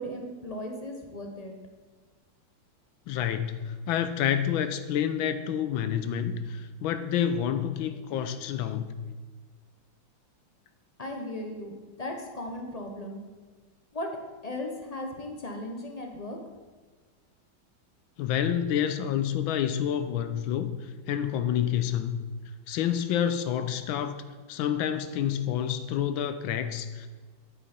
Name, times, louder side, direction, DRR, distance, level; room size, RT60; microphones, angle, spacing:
voice 1, 0.0-1.6 11.0-13.2 13.9-16.4, left 1 dB, 40° left, 2 dB, 0.5 m, -37 dB
voice 2, 3.1-9.0 18.2-22.2 22.7-24.2 24.5-27.1, left 9 dB, 85° left, 10 dB, 1.4 m, -28 dB
9.0 x 8.4 x 4.3 m, 1.4 s
omnidirectional pair, 2.1 m